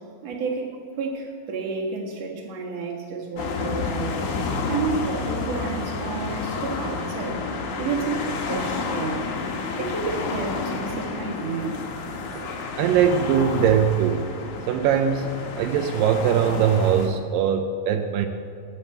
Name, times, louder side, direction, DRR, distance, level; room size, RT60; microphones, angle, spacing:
voice 1, 0.0-4.4 4.7-7.4 7.8-9.3 9.8-11.9, right 4 dB, 50° right, -1 dB, 2.2 m, -31 dB
sound 1, 3.4-17.1, left 4 dB, 75° left, 1.5 m, -30 dB
voice 2, 12.3-14.3 14.7-15.3 15.6-18.3, right 8 dB, 90° right, 6 dB, 1.9 m, -21 dB
10.5 x 8.5 x 7.9 m, 2.3 s
omnidirectional pair, 4.8 m